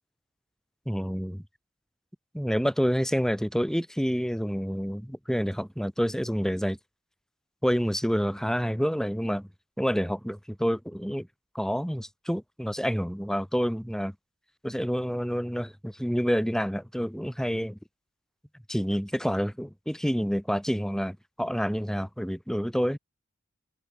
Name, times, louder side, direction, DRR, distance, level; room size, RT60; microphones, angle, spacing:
voice 1, 0.9-1.4 2.3-6.8 7.6-9.5 9.8-11.3 11.6-14.1 14.6-17.8 18.7-23.0, equal, ahead, 7.0 m, -28 dB
open air
head